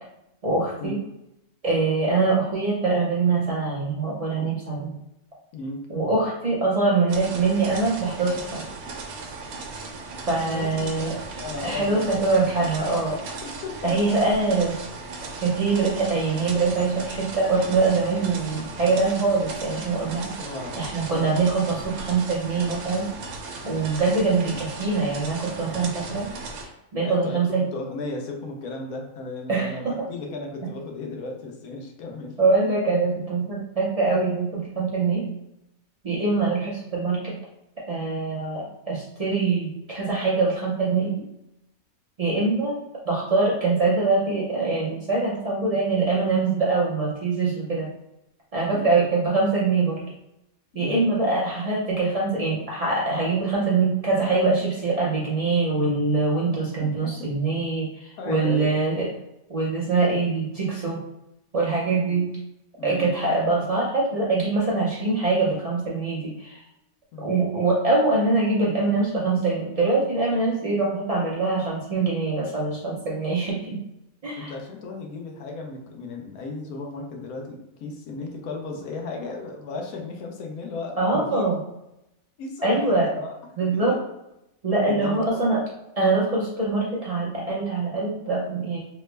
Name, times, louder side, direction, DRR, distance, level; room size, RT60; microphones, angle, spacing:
voice 1, 0.4-1.0 1.6-4.9 5.9-8.6 10.3-11.2 11.6-13.2 13.8-14.7 15.4-20.3 20.8-23.1 23.6-26.3 26.9-27.6 29.5-30.1 32.4-35.3 36.0-37.3 37.9-41.2 42.2-42.8 43.1-47.9 48.5-50.0 50.7-59.1 59.5-61.0 61.5-62.3 62.8-66.6 67.2-73.8 74.2-74.5 81.0-81.6 82.6-83.1 83.6-84.0 84.6-85.6 86.0-88.8, right 3 dB, 70° right, -5 dB, 0.3 m, -23 dB
voice 2, 5.5-5.9 10.4-12.2 13.4-14.4 20.4-20.8 21.1-21.3 27.0-32.3 32.6-32.7 48.6-48.9 50.8-51.0 58.2-58.7 62.1-62.2 62.8-63.1 67.1-67.3 74.4-81.4 82.4-83.3 83.7-84.0 84.9-85.5, left 3 dB, 85° left, 1 dB, 1.1 m, -35 dB
sound 1, 7.1-26.6, right 3 dB, 85° right, 1.1 m, -37 dB
3.3 x 2.0 x 3.2 m, 0.86 s
omnidirectional pair, 1.5 m